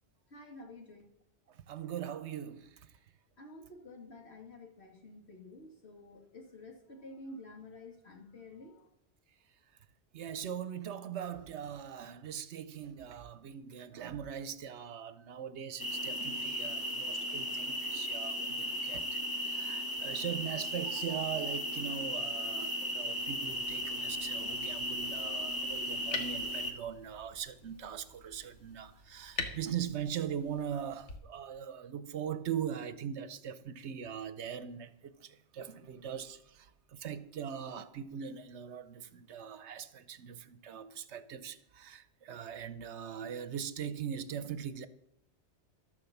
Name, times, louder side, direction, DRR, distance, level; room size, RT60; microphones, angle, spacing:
voice 1, 0.3-1.0 3.4-8.9, left 2 dB, 70° left, 2.4 m, -50 dB
voice 2, 1.7-2.7 10.1-44.9, right 8 dB, 75° right, 1.0 m, -41 dB
sound 1, 15.8-26.7, equal, 20° left, 1.4 m, -36 dB
Light Switch, 23.1-31.2, left 3 dB, 85° left, 1.7 m, -46 dB
12.0 x 7.3 x 7.1 m
omnidirectional pair, 1.2 m